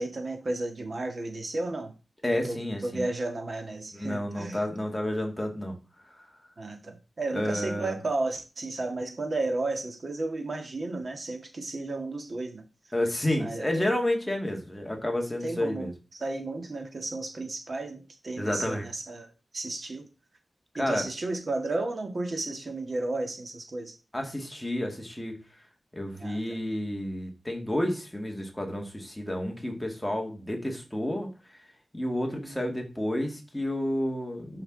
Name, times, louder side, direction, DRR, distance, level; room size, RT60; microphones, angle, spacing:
voice 1, 0.0-1.9 2.4-4.6 6.6-12.6 13.4-14.0 15.4-20.1 20.8-24.0 26.2-26.4 32.3-32.6, right 2 dB, 50° right, 5 dB, 1.7 m, -33 dB
voice 2, 2.2-3.0 3.9-5.8 6.0-6.3 7.3-7.9 12.9-15.9 18.4-18.8 20.8-21.0 24.1-25.4 25.9-31.3 31.9-34.6, left 1 dB, 5° left, 2 dB, 1.9 m, -30 dB
10.5 x 5.8 x 3.9 m, 0.33 s
wide cardioid pair, 130°, 0 cm